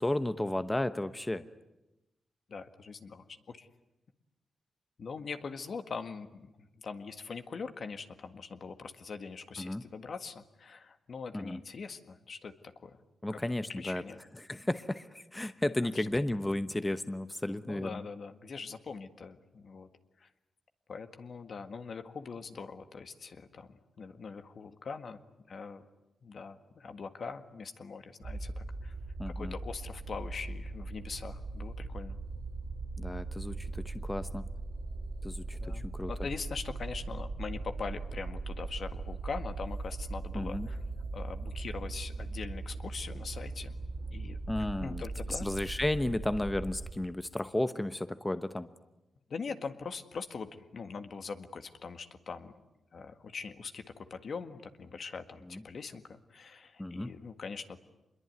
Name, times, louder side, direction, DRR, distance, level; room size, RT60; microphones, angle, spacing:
voice 1, 0.0-1.4 9.6-9.8 11.3-11.6 13.2-14.0 14.4-18.0 29.2-29.6 33.0-34.4 35.2-36.1 40.3-40.7 44.5-45.0 45.3-48.7 55.5-55.6 56.8-57.1, left 1 dB, 15° left, 11 dB, 1.0 m, -33 dB
voice 2, 2.5-3.7 5.0-13.0 13.3-14.2 15.9-16.1 17.6-19.9 20.2-20.3 20.9-25.9 26.2-28.9 29.2-32.2 35.6-35.8 36.1-40.8 41.1-43.7 44.1-44.4 44.8-45.4 49.3-52.5 52.9-57.8, left 5 dB, 60° left, 8 dB, 1.8 m, -42 dB
sound 1, 28.2-46.9, right 3 dB, 55° right, 2.5 m, -39 dB
26.0 x 22.0 x 9.5 m, 0.97 s
cardioid pair, 75°, 0 cm